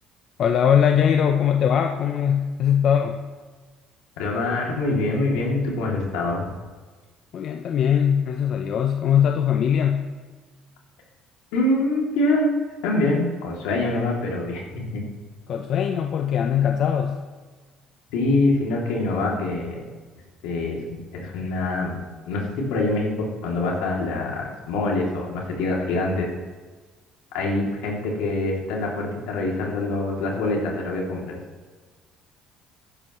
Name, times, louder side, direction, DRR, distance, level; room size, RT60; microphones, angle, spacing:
voice 1, 0.4-3.2 7.3-10.1 15.5-17.2, left 8 dB, 55° left, 4 dB, 0.7 m, -21 dB
voice 2, 4.2-6.5 11.5-15.0 18.1-19.8 20.4-22.0 22.2-26.3 27.3-31.4, left 2 dB, 90° left, -2 dB, 2.6 m, -25 dB
15.0 x 10.5 x 3.1 m, 1.4 s
supercardioid pair, 95°, 0 cm